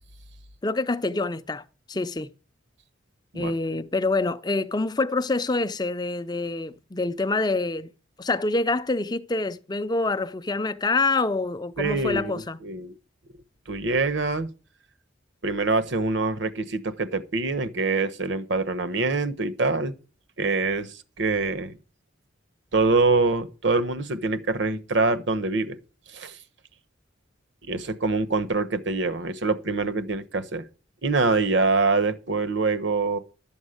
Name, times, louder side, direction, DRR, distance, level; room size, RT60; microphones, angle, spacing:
voice 1, 0.6-2.3 3.3-7.9 8.2-12.6, left 3 dB, 20° left, 0.5 m, -26 dB
voice 2, 11.8-12.9 13.7-14.5 15.4-19.9 20.4-21.7 22.7-25.8 26.1-26.4 27.7-30.6 31.0-33.2, right 3 dB, 65° right, 1.0 m, -25 dB
12.0 x 7.2 x 6.5 m
head